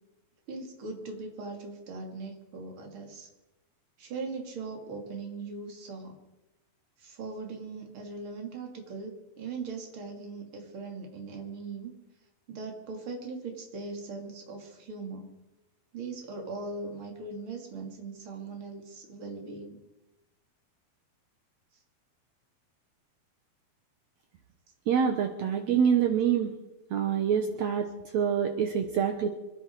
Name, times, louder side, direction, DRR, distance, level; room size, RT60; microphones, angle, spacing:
voice 1, 0.5-3.3 4.0-6.2 7.0-11.9 12.5-15.3 15.9-19.8, right 3 dB, 35° right, 2 dB, 3.1 m, -40 dB
voice 2, 24.9-26.5 26.9-29.3, right 7 dB, 70° right, 6 dB, 1.7 m, -26 dB
25.5 x 11.0 x 4.7 m, 0.99 s
omnidirectional pair, 4.4 m